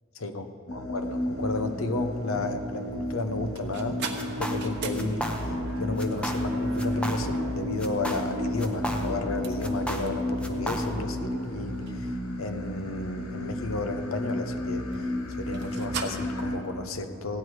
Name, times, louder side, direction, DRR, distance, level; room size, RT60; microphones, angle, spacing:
voice 1, 0.2-17.4, left 2 dB, 70° left, 8 dB, 0.8 m, -33 dB
sound 1, 0.7-16.6, left 1 dB, 90° left, 1.2 m, -33 dB
sound 2, 1.0-16.1, right 4 dB, 50° right, 1.0 m, -43 dB
sound 3, 4.2-4.7 4.9-5.7 6.0-6.5 6.8-7.5 7.8-9.3 9.6-11.1, equal, 5° left, 0.7 m, -34 dB
16.0 x 9.9 x 4.7 m, 2.8 s
head